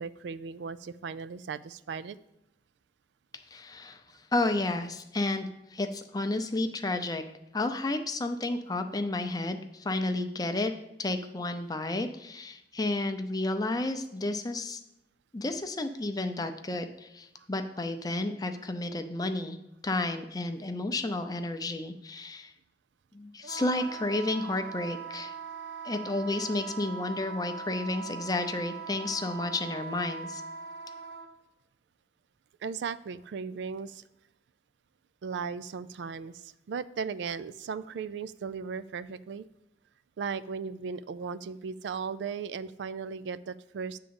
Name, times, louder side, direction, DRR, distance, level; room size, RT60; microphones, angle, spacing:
voice 1, 0.0-2.2 32.6-34.0 35.2-39.4 40.2-44.0, right 5 dB, 70° right, 15 dB, 0.3 m, -37 dB
voice 2, 3.5-7.2 7.5-10.7 11.0-14.8 15.3-19.6 19.8-22.5 23.1-25.3 25.8-30.4, left 2 dB, 20° left, 7 dB, 0.6 m, -31 dB
Wind instrument woodwind instrument, 23.4-31.3, right 5 dB, 90° right, 1.2 m, -41 dB
9.7 x 3.8 x 7.0 m, 0.88 s
head